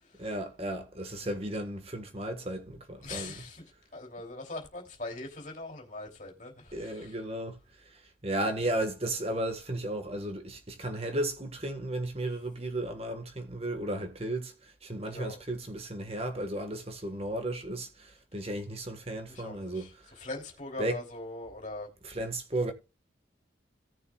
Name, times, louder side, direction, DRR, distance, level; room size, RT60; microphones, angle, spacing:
voice 1, 0.2-3.4 6.7-7.6 7.9-20.1 20.8-21.0 22.0-22.7, right 1 dB, 30° right, 1.5 m, -34 dB
voice 2, 3.0-3.6 3.9-7.2 15.1-15.4 19.3-19.9 20.2-21.9, left 2 dB, 40° left, 2.9 m, -41 dB
17.0 x 6.6 x 2.4 m
head